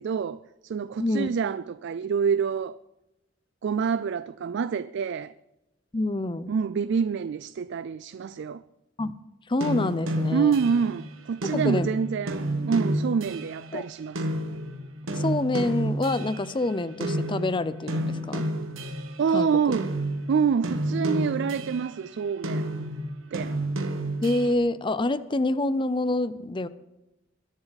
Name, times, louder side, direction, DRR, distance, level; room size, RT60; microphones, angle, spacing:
voice 1, 0.0-2.8 3.6-5.3 6.5-8.6 10.3-14.2 19.2-19.9 20.3-22.7 23.3-23.6, right 6 dB, 60° right, 0.3 m, -27 dB
voice 2, 1.0-1.3 5.9-6.5 9.0-9.1 9.5-10.5 11.5-11.9 13.7-13.9 15.1-18.4 19.3-19.5 24.2-26.7, left 2 dB, 25° left, 0.6 m, -27 dB
sound 1, 9.6-16.7 17.0-19.3 19.7-22.0 22.4-24.5, right 1 dB, 80° right, 1.5 m, -30 dB
21.5 x 10.5 x 4.1 m
head